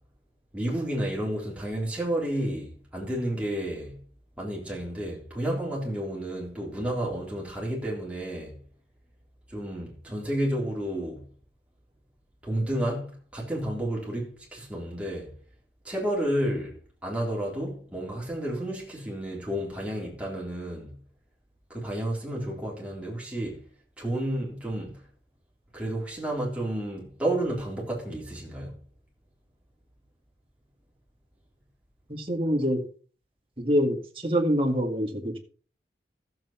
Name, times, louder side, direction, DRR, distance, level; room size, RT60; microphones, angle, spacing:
voice 1, 0.5-4.0 4.4-8.6 9.5-11.2 12.4-15.3 15.8-20.9 21.7-23.7 24.0-25.0 25.7-28.7, right 1 dB, 5° right, 3.6 m, -31 dB
voice 2, 32.1-32.8 33.6-35.4, equal, 30° right, 2.1 m, -25 dB
14.0 x 7.6 x 4.4 m
head